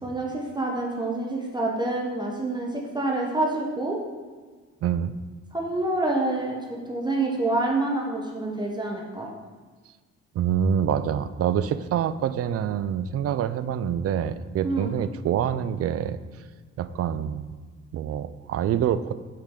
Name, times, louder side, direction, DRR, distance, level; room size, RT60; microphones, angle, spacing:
voice 1, 0.0-4.0 5.5-9.3 14.6-14.9, right 2 dB, 15° right, -2 dB, 1.1 m, -27 dB
voice 2, 4.8-5.1 10.3-16.2 16.8-17.5 17.9-19.1, right 9 dB, 50° right, 13 dB, 0.4 m, -26 dB
7.4 x 4.9 x 3.8 m, 1.4 s
cardioid pair, 90°, 30 cm